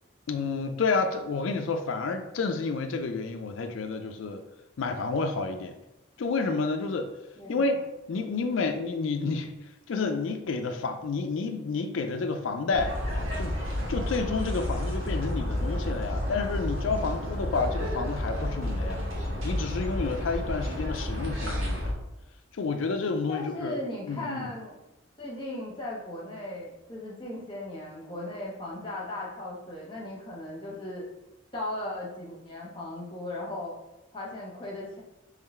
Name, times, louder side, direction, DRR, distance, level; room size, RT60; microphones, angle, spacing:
voice 1, 0.3-4.4 4.8-5.8 6.2-7.1 7.5-7.8 8.1-9.5 9.9-13.0 13.4-13.6 13.9-19.1 19.4-21.9 22.5-23.8 24.1-24.5, left 4 dB, 75° left, 7 dB, 0.4 m, -30 dB
voice 2, 7.4-7.8 23.3-24.7 25.2-31.0 31.5-33.7 34.1-35.0, left 1 dB, 25° left, -3 dB, 1.1 m, -37 dB
sound 1, 12.7-21.9, left 1 dB, 85° right, 1.5 m, -31 dB
3.8 x 3.1 x 4.2 m, 0.95 s
head